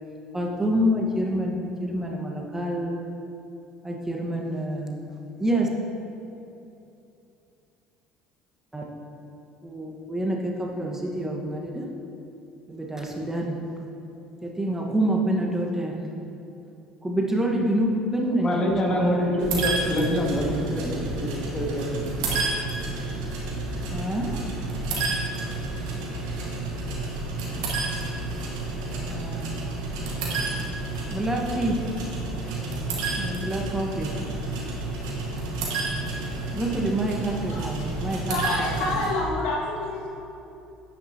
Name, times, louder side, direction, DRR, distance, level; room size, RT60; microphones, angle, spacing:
voice 1, 0.3-3.0 3.8-5.1 5.4-5.7 8.7-8.8 9.6-11.9 12.7-13.6 14.4-16.1 17.0-19.5 23.9-24.4 29.1-29.6 31.1-31.9 33.1-34.2 36.5-38.9, right 1 dB, 15° right, -1 dB, 1.3 m, -27 dB
voice 2, 18.4-22.3, equal, 30° left, 0 dB, 1.8 m, -26 dB
sound 1, 19.4-39.1, right 2 dB, 75° right, 1.6 m, -30 dB
voice 3, 38.3-40.2, left 2 dB, 75° left, -3 dB, 1.8 m, -28 dB
9.8 x 8.9 x 2.8 m, 2.8 s
hypercardioid pair, 60°, 3 cm